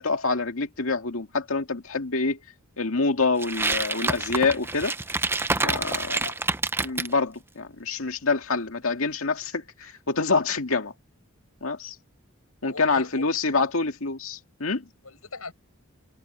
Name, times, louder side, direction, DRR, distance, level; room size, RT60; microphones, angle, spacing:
voice 1, 0.0-2.4 2.8-4.9 5.6-6.1 6.8-10.9 11.6-12.0 12.6-14.9, left 4 dB, 70° left, 2.2 m, -26 dB
sound 1, 3.4-7.1, right 3 dB, 10° right, 0.6 m, -27 dB
voice 2, 6.0-6.4 12.7-13.3 13.6-13.7 15.0-15.5, left 3 dB, 90° left, 7.2 m, -38 dB
head